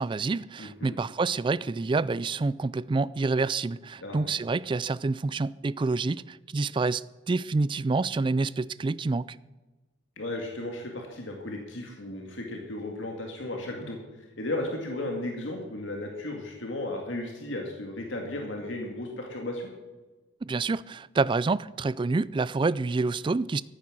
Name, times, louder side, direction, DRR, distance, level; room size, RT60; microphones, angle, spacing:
voice 1, 0.0-9.4 20.4-23.6, right 3 dB, 25° right, 0.3 m, -28 dB
voice 2, 0.6-1.0 4.0-4.3 10.2-19.7, left 1 dB, 80° left, 2.1 m, -35 dB
14.0 x 9.5 x 6.3 m
head